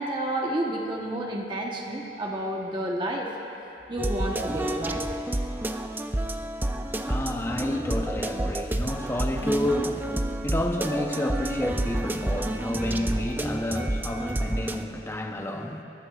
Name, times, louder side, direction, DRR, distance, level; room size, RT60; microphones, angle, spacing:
voice 1, 0.0-3.3 3.9-5.1, right 1 dB, 25° right, -1 dB, 1.1 m, -30 dB
sound 1, 4.0-14.9, right 1 dB, 10° right, 0.4 m, -29 dB
voice 2, 6.7-15.8, left 1 dB, 15° left, 2 dB, 0.8 m, -30 dB
30.0 x 14.5 x 2.5 m, 2.9 s
head